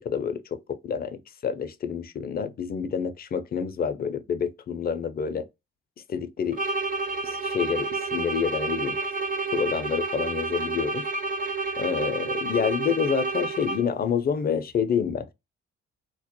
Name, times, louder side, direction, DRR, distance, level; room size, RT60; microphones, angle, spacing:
voice 1, 0.0-5.5 6.1-6.6 7.3-9.0 9.5-11.1 11.8-15.3, left 7 dB, 30° left, 0.4 m, -28 dB
sound 1, 6.5-14.1, right 3 dB, 30° right, 0.5 m, -30 dB
2.2 x 2.0 x 2.9 m
hypercardioid pair, 45°, 30 cm